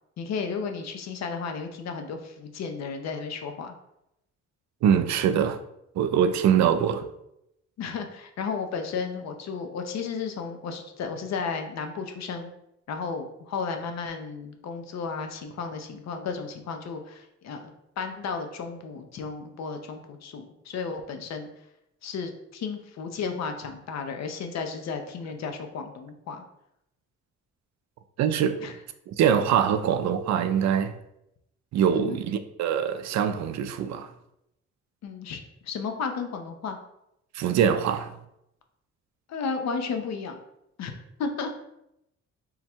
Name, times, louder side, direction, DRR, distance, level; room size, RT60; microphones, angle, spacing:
voice 1, 0.2-3.7 6.6-6.7 7.8-12.5 12.9-21.5 22.0-26.4 28.6-28.7 31.9-32.2 35.0-36.8 39.3-40.4 40.8-40.9 41.2-41.5, left 5 dB, 60° left, 0.7 m, -33 dB
voice 2, 4.8-5.6 6.0-7.0 28.2-28.6 29.1-30.9 31.7-34.1 37.3-38.1, right 8 dB, 65° right, 0.4 m, -23 dB
3.7 x 2.2 x 4.3 m
cardioid pair, 90°, 30 cm